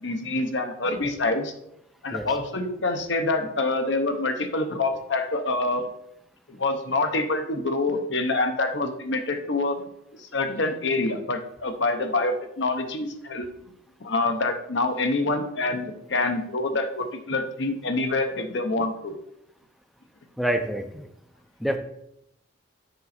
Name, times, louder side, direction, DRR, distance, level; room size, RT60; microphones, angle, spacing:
voice 1, 0.0-1.5 2.0-5.9 6.5-9.8 10.3-13.5 14.0-19.1, left 2 dB, 60° left, 7 dB, 0.8 m, -26 dB
voice 2, 20.4-21.1 21.6-21.8, right 1 dB, ahead, 6 dB, 0.5 m, -26 dB
6.8 x 5.2 x 4.2 m, 0.78 s
head